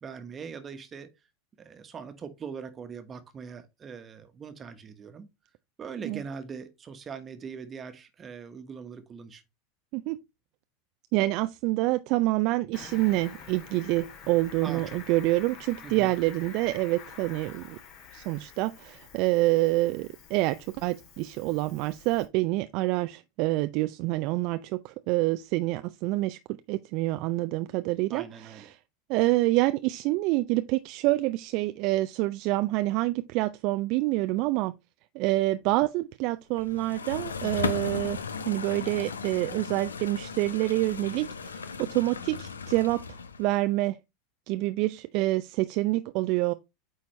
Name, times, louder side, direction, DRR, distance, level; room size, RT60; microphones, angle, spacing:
voice 1, 0.0-1.1 1.6-5.3 5.8-9.4 14.6-15.0 15.8-16.1 28.1-28.7, right 6 dB, 30° right, 1.2 m, -41 dB
voice 2, 11.1-17.8 18.1-28.7 29.1-34.7 35.1-43.0 43.4-44.0 44.5-46.5, right 19 dB, 55° right, 0.4 m, -27 dB
Cricket, 12.7-22.3, left 6 dB, 50° left, 2.1 m, -48 dB
sound 1, 36.6-43.6, left 5 dB, 85° left, 0.6 m, -36 dB
8.5 x 4.2 x 3.2 m
hypercardioid pair, 85°, 0 cm